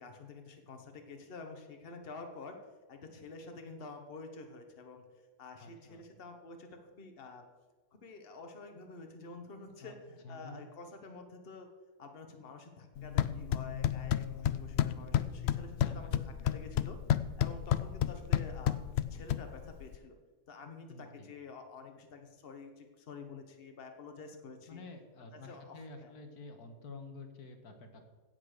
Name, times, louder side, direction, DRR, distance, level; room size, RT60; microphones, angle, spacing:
voice 1, 0.0-2.6 2.9-5.0 5.4-7.4 7.9-9.9 10.3-11.7 12.0-17.0 17.4-18.8 19.1-20.2 20.5-24.8 25.3-26.1, left 3 dB, 40° left, 5 dB, 1.5 m, -49 dB
voice 2, 5.6-6.1 9.8-10.0 10.2-10.6 15.8-16.1 20.9-21.3 24.7-28.0, left 3 dB, 90° left, 5 dB, 1.9 m, -49 dB
sound 1, 13.0-20.0, left 10 dB, 70° left, 0.6 m, -32 dB
16.5 x 6.1 x 6.6 m, 1.3 s
omnidirectional pair, 1.6 m